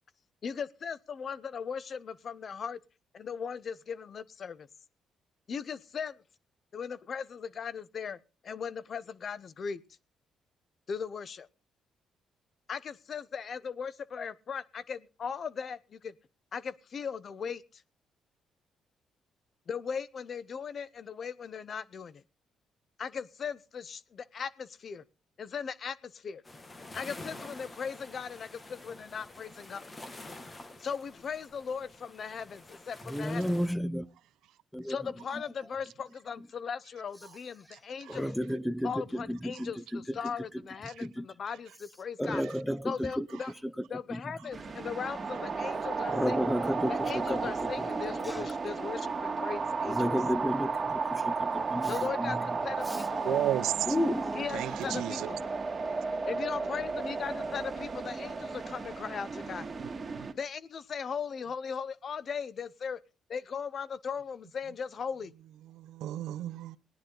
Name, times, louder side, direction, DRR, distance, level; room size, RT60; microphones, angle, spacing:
voice 1, 0.4-2.8 3.1-4.7 5.5-6.2 6.7-9.8 10.9-11.5 12.7-16.1 16.5-17.8 19.7-22.2 23.0-25.0 25.4-26.4 26.9-29.8 30.8-33.5 34.9-38.3 38.8-42.4 42.8-43.5 43.9-46.5 46.9-50.2 51.9-53.4 54.3-55.4 56.3-59.7 60.4-63.0 63.3-65.3, left 6 dB, 50° left, 0.8 m, -38 dB
sound 1, 26.4-33.7, left 2 dB, 25° left, 1.9 m, -48 dB
voice 2, 33.1-34.1 34.7-35.0 38.1-40.0 41.0-41.3 42.2-43.3 44.1-44.2 46.1-47.5 48.2-48.4 49.8-52.4 52.9-53.0 53.9-54.4 54.9-55.0, equal, 5° left, 0.6 m, -32 dB
voice 3, 37.7-38.2 39.5-39.6 40.9-41.1 42.3-42.6 53.2-53.7 54.5-55.3 60.1-60.3 65.6-66.8, right 13 dB, 85° right, 0.7 m, -34 dB
sound 2, 44.5-60.3, right 4 dB, 30° right, 2.0 m, -34 dB
19.0 x 10.5 x 3.9 m
cardioid pair, 90°, 0 cm